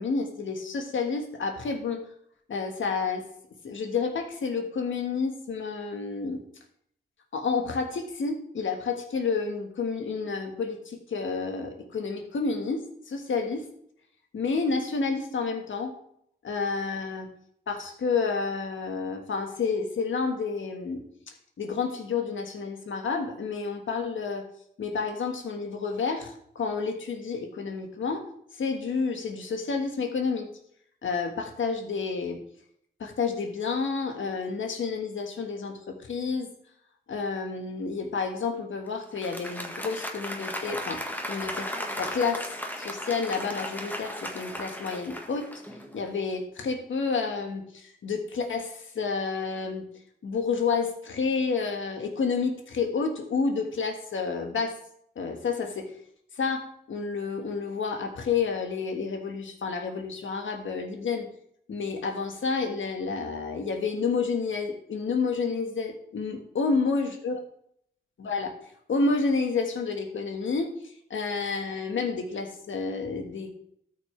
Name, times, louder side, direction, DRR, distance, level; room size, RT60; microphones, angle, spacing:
voice 1, 0.0-2.1 2.5-3.3 3.6-6.4 7.3-13.7 14.3-15.9 16.4-17.3 17.7-21.0 21.6-24.5 24.8-28.3 28.6-30.5 31.0-32.4 33.0-36.5 37.1-41.0 41.3-45.5 45.9-49.9 50.2-54.8 55.2-55.9 56.4-61.3 61.7-67.4 68.2-68.5 68.9-70.8 71.1-73.6, left 4 dB, 70° left, 4 dB, 1.6 m, -30 dB
Applause, 39.0-46.0, equal, 10° left, 1.6 m, -36 dB
13.0 x 6.1 x 3.3 m, 0.70 s
cardioid pair, 55°, 21 cm